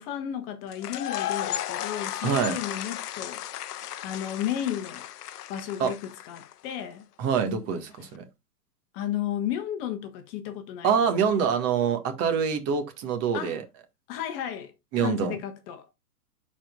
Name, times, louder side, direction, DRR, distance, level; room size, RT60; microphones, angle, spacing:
voice 1, 0.0-3.4 4.0-5.0 5.5-7.0 8.9-10.9 11.2-11.3 13.3-13.6 14.1-15.9, left 10 dB, 35° left, 1.2 m, -33 dB
sound 1, 0.7-6.7, left 12 dB, 70° left, 0.7 m, -34 dB
voice 2, 2.2-2.6 5.8-5.9 7.2-8.3 10.8-13.6 14.9-15.4, right 6 dB, 30° right, 1.8 m, -25 dB
13.0 x 4.5 x 2.4 m
hypercardioid pair, 130°, 48 cm